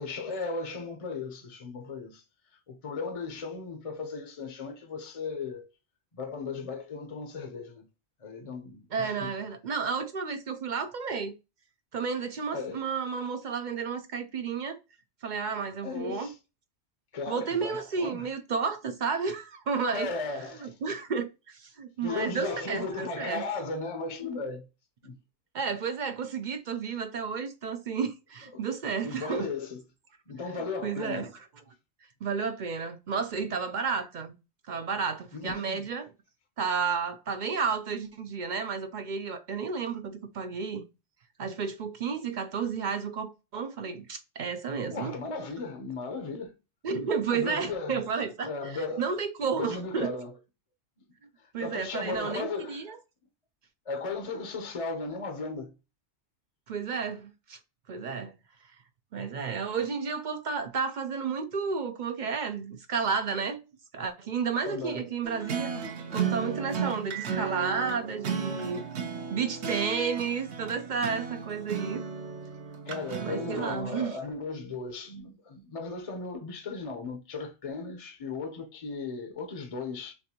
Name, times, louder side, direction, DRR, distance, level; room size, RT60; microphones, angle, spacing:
voice 1, 0.0-2.2 2.7-5.7 6.1-7.9 8.2-9.3 12.5-12.8 15.8-16.4 17.1-18.3 19.9-20.8 22.0-24.7 25.0-25.2 28.5-28.7 29.0-29.8 30.3-31.3 35.3-35.8 44.9-46.5 47.3-48.0 48.4-49.1 49.5-50.3 51.4-52.9 53.9-55.7 64.6-65.1 72.8-80.1, left 4 dB, 35° left, 0.7 m, -36 dB
voice 2, 8.9-11.3 11.9-14.8 15.2-16.3 17.3-20.1 20.6-23.4 25.5-29.5 30.8-31.3 32.2-34.3 34.7-36.1 36.6-40.8 41.4-45.1 46.8-50.1 51.5-53.0 56.7-57.6 57.9-58.3 59.1-63.6 63.9-65.7 66.1-68.8 69.3-72.1 73.2-74.2, right 5 dB, 55° right, 0.6 m, -32 dB
sound 1, 65.2-73.8, right 6 dB, 75° right, 1.0 m, -34 dB
6.6 x 2.5 x 2.8 m
omnidirectional pair, 1.1 m